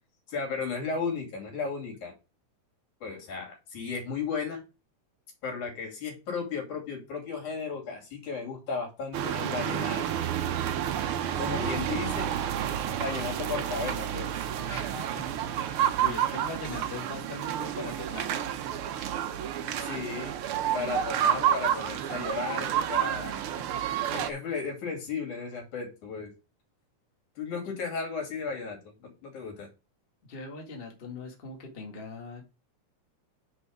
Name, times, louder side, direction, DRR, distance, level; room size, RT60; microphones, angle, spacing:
voice 1, 0.3-2.1 3.0-4.6 5.4-10.1 11.4-12.3 13.0-14.5 19.8-20.3 20.7-23.4 24.1-26.3 27.4-29.7, left 5 dB, 75° left, 4.2 m, -34 dB
sound 1, 9.1-24.3, right 10 dB, 85° right, 1.2 m, -30 dB
voice 2, 11.6-11.9 14.7-18.3 23.3-23.6 30.2-32.4, left 3 dB, 25° left, 1.6 m, -41 dB
9.1 x 4.7 x 4.8 m
omnidirectional pair, 3.5 m